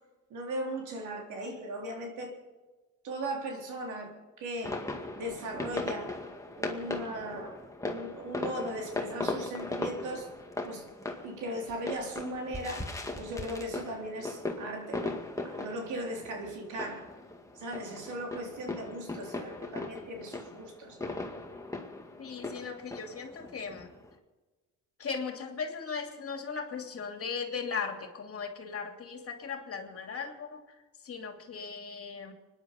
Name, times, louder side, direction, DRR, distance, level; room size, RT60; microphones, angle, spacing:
voice 1, 0.3-2.4 3.0-4.8 5.2-6.1 6.6-10.3 10.6-10.9 11.2-17.1 17.5-21.2, right 1 dB, 80° right, 3.7 m, -38 dB
sound 1, 4.6-24.1, left 2 dB, 10° left, 2.1 m, -39 dB
voice 2, 22.2-23.9 25.0-32.3, left 5 dB, 50° left, 2.9 m, -38 dB
25.0 x 10.5 x 5.3 m
cardioid pair, 90°, 30 cm